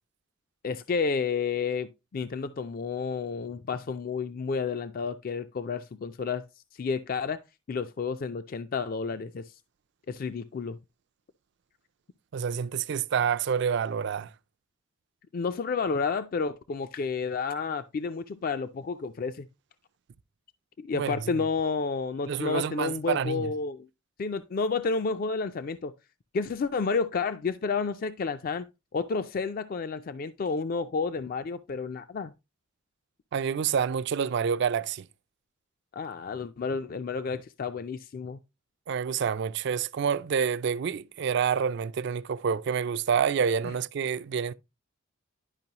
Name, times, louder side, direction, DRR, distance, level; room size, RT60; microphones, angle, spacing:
voice 1, 0.6-6.4 6.7-7.4 7.7-9.5 10.1-10.8 15.3-19.5 20.8-23.9 24.2-25.9 26.3-28.7 28.9-32.3 35.9-38.4, left 5 dB, 45° left, 0.4 m, -31 dB
voice 2, 12.3-14.3 20.9-21.2 22.3-23.5 33.3-35.1 38.9-44.5, right 7 dB, 60° right, 0.4 m, -28 dB
10.5 x 5.3 x 2.9 m
head